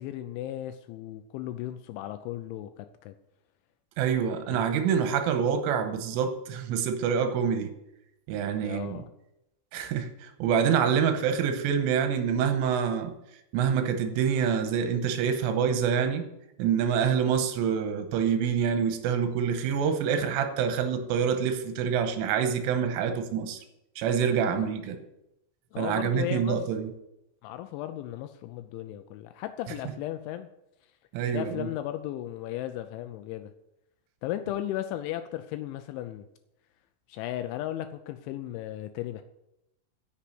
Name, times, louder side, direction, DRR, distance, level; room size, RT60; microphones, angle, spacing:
voice 1, 0.0-3.1 4.5-4.6 8.6-9.1 24.5-24.8 25.7-26.6 27.4-30.5 31.3-33.5 34.2-36.3 37.1-39.2, left 13 dB, 85° left, 9 dB, 2.7 m, -35 dB
voice 2, 4.0-7.7 8.3-9.0 9.7-13.1 13.5-16.3 16.6-23.6 24.0-25.0 25.8-26.9 31.1-31.7, right 7 dB, 85° right, 7 dB, 3.4 m, -26 dB
8.7 x 6.9 x 7.8 m, 0.86 s
omnidirectional pair, 5.8 m